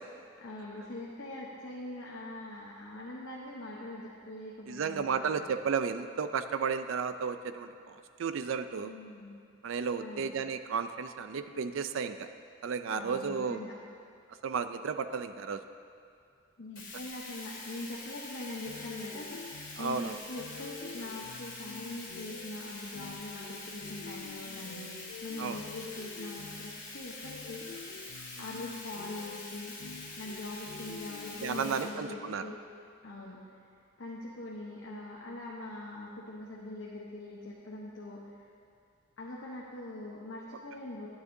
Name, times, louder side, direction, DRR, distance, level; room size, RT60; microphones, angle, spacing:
voice 1, 0.4-5.5 8.8-9.4 10.0-10.3 12.9-13.7 16.6-19.4 19.8-24.9 25.2-27.7 28.4-29.8 30.2-32.6 33.0-33.5 34.0-38.3 39.2-41.1, left 2 dB, 60° left, -4 dB, 0.9 m, -42 dB
voice 2, 4.7-8.9 9.6-12.3 12.6-13.6 14.4-15.6 19.8-20.2 25.4-25.6 31.4-32.5, right 6 dB, 70° right, 10 dB, 0.4 m, -33 dB
Bathtub (filling or washing), 16.8-31.8, left 2 dB, 40° left, 1.7 m, -45 dB
sound 1, 18.6-32.4, left 6 dB, 90° left, 0.3 m, -49 dB
12.0 x 9.1 x 2.7 m, 2.3 s
head